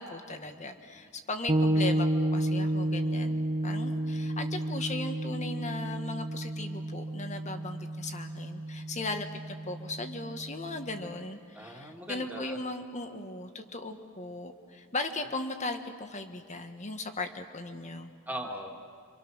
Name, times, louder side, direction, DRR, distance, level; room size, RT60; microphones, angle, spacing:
voice 1, 0.0-18.1, left 2 dB, 35° left, 6 dB, 1.7 m, -38 dB
sound 1, 1.5-11.2, right 1 dB, 30° right, 0.9 m, -31 dB
voice 2, 11.5-12.6 18.3-18.7, right 1 dB, 10° right, 1 dB, 2.3 m, -40 dB
29.5 x 26.0 x 6.4 m, 2.2 s
head